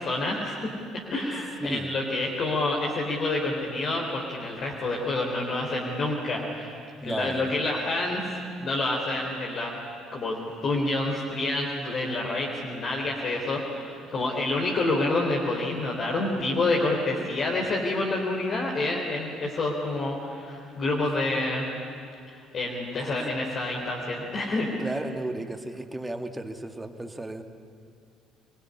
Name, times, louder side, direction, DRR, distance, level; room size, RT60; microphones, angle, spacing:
voice 1, 0.0-6.8 7.0-9.7 10.1-21.7 22.3-24.7, left 2 dB, 40° left, -2 dB, 3.8 m, -28 dB
voice 2, 1.6-1.9 7.0-7.5 23.0-23.3 24.8-27.4, right 2 dB, 10° right, 7 dB, 2.1 m, -34 dB
26.5 x 22.0 x 9.9 m, 2.3 s
figure-of-eight pair, 55°, 0 cm